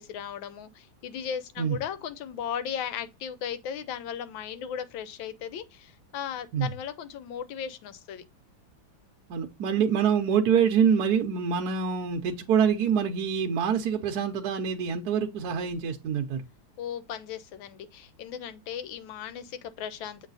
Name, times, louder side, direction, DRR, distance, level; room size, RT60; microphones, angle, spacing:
voice 1, 0.0-8.2 16.8-20.3, left 8 dB, 75° left, 1.4 m, -36 dB
voice 2, 9.3-16.4, right 7 dB, 65° right, 1.1 m, -25 dB
7.4 x 3.2 x 4.0 m
omnidirectional pair, 2.2 m